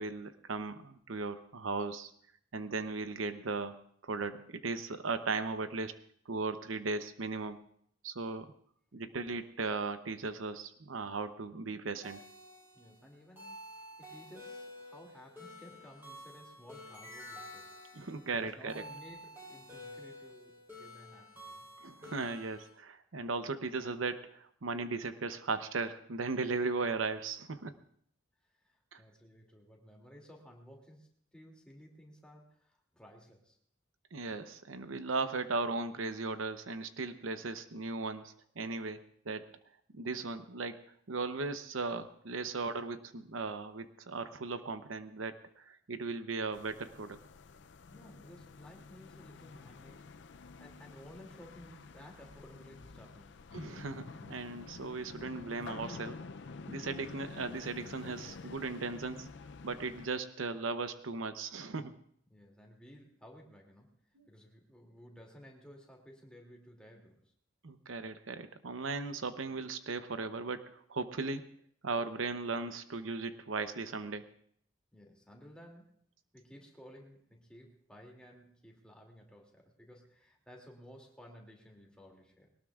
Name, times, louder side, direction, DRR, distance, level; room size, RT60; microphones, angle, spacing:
voice 1, 0.0-2.1 2.5-3.8 4.0-5.9 6.3-7.6 8.0-8.5 8.9-12.2 17.9-18.8 21.8-27.7 28.9-29.0 34.1-39.0 39.3-39.4 39.9-40.8 41.1-47.2 53.5-56.2 56.7-59.3 59.6-61.9 64.2-64.3 67.6-71.5 71.8-74.2, right 3 dB, 85° right, 10 dB, 0.8 m, -37 dB
sound 1, 12.0-22.7, left 1 dB, 10° right, 7.0 m, -50 dB
voice 2, 12.7-17.8 18.4-21.7 28.4-33.6 42.4-42.5 47.9-53.4 62.3-64.0 64.3-67.3 74.9-76.0 76.3-82.5, equal, 5° left, 0 dB, 2.6 m, -55 dB
sound 2, 46.5-60.1, left 4 dB, 60° left, 0.5 m, -49 dB
21.5 x 18.5 x 2.4 m, 0.63 s
head